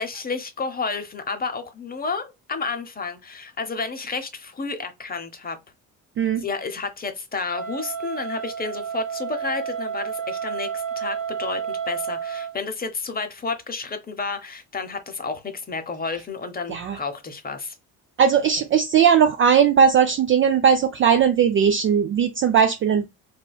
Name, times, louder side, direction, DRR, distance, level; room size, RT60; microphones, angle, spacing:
voice 1, 0.0-5.6 6.4-17.8, left 4 dB, 20° left, 0.7 m, -31 dB
Wind instrument woodwind instrument, 7.5-12.5, right 7 dB, 50° right, 1.3 m, -30 dB
voice 2, 18.2-23.1, right 7 dB, 30° right, 0.3 m, -18 dB
4.2 x 2.2 x 2.2 m
hypercardioid pair, 60°, 47 cm